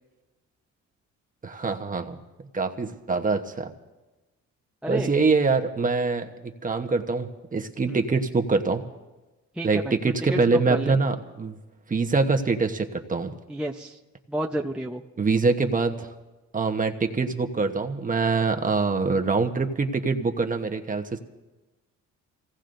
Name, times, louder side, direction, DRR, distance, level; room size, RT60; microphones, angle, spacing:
voice 1, 1.4-2.2 2.5-3.7 4.9-8.8 9.6-11.6 11.9-13.3 15.2-16.1 16.5-21.2, right 4 dB, 25° right, 5 dB, 1.1 m, -24 dB
voice 2, 4.8-5.1 7.9-8.0 9.6-10.0 10.3-10.4 10.7-11.0 13.5-14.0 14.3-15.0, right 1 dB, 5° right, 0 dB, 0.7 m, -30 dB
26.5 x 17.0 x 2.6 m, 1.1 s
cardioid pair, 90°, 30 cm